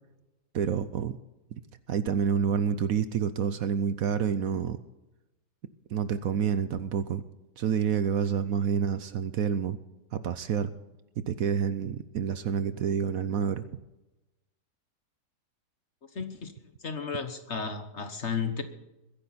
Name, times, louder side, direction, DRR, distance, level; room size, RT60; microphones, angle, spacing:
voice 1, 0.5-1.2 1.9-4.8 5.9-7.2 7.6-9.8 10.1-10.7 11.2-13.7, right 7 dB, 65° right, 13 dB, 1.0 m, -28 dB
voice 2, 16.1-16.5 16.8-18.6, left 5 dB, 45° left, 9 dB, 1.3 m, -33 dB
22.0 x 10.5 x 4.1 m, 0.99 s
omnidirectional pair, 1.8 m